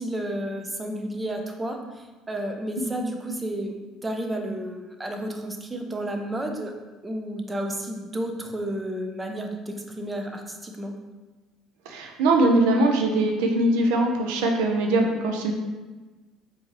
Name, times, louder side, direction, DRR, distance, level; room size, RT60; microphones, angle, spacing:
voice 1, 0.0-3.7 4.0-6.7 7.0-10.9, right 1 dB, 15° right, 3 dB, 0.5 m, -31 dB
voice 2, 11.9-15.5, right 2 dB, 90° right, 2 dB, 0.5 m, -21 dB
4.4 x 2.7 x 3.0 m, 1.2 s
supercardioid pair, 100°, 0 cm